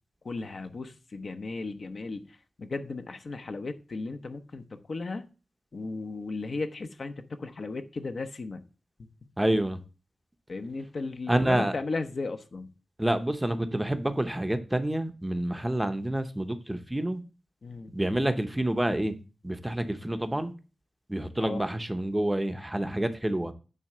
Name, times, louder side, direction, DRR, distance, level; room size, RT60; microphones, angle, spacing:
voice 1, 0.2-5.3 5.7-8.6 10.5-12.7 17.6-17.9 21.4-21.6, left 3 dB, 50° left, 0.7 m, -36 dB
voice 2, 9.4-9.8 11.3-11.7 13.0-17.2 17.9-19.1 19.4-20.5 21.1-23.5, right 1 dB, 10° right, 0.7 m, -28 dB
9.0 x 3.6 x 6.6 m
wide cardioid pair, 160°, 0 cm